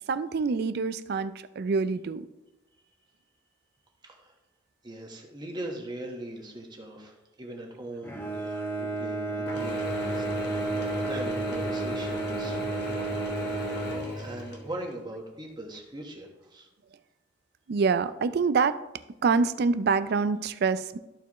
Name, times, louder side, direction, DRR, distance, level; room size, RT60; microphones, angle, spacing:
voice 1, 0.1-2.3 17.7-18.8 19.2-21.0, right 5 dB, 55° right, 14 dB, 0.4 m, -26 dB
voice 2, 4.0-4.3 4.8-12.6 14.2-16.7, right 1 dB, 25° right, 1 dB, 1.3 m, -40 dB
Bowed string instrument, 8.0-14.7, right 2 dB, 15° left, 1.2 m, -32 dB
Mechanisms / Drill, 9.5-15.0, left 1 dB, 60° left, 1.3 m, -36 dB
13.5 x 4.6 x 3.0 m, 1.0 s
head